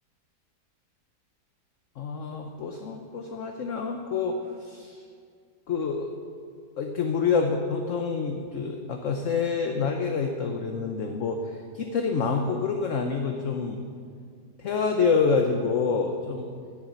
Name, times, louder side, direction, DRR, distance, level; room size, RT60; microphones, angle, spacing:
voice 1, 2.0-5.0 5.7-6.1 6.8-11.4 11.7-13.8 14.6-16.5, left 5 dB, 55° left, 3 dB, 1.1 m, -27 dB
13.5 x 11.0 x 6.1 m, 2.2 s
omnidirectional pair, 1.8 m